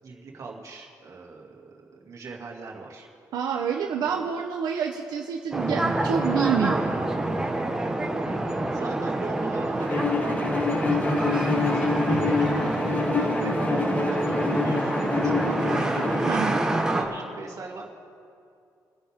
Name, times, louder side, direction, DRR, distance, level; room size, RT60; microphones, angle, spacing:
voice 1, 0.0-3.1 8.7-12.4 13.1-17.9, right 3 dB, 50° right, -1 dB, 2.7 m, -41 dB
voice 2, 3.3-6.9 16.2-16.6, right 7 dB, 85° right, 1 dB, 1.0 m, -27 dB
sound 1, 5.5-17.0, right 2 dB, 10° right, 1.5 m, -27 dB
Bowed string instrument, 9.9-16.5, left 4 dB, 20° left, 1.0 m, -27 dB
29.0 x 10.0 x 3.7 m, 2.5 s
cardioid pair, 130°, 7 cm